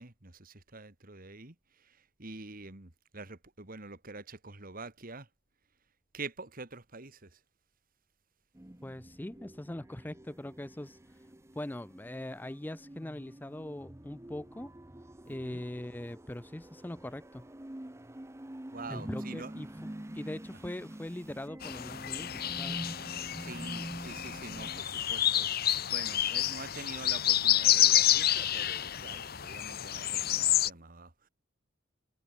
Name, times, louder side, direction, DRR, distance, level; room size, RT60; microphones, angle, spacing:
voice 1, 0.0-5.3 6.1-7.4 15.4-15.6 18.7-19.6 23.4-25.5 25.9-31.3, right 3 dB, 45° right, 2.6 m, -46 dB
sound 1, 8.5-24.8, right 1 dB, 15° right, 0.8 m, -46 dB
voice 2, 8.8-11.0 11.6-14.7 15.3-17.4 18.9-19.7 20.1-22.8, left 1 dB, 10° left, 0.4 m, -41 dB
sound 2, 21.6-30.7, left 12 dB, 50° left, 1.0 m, -29 dB
head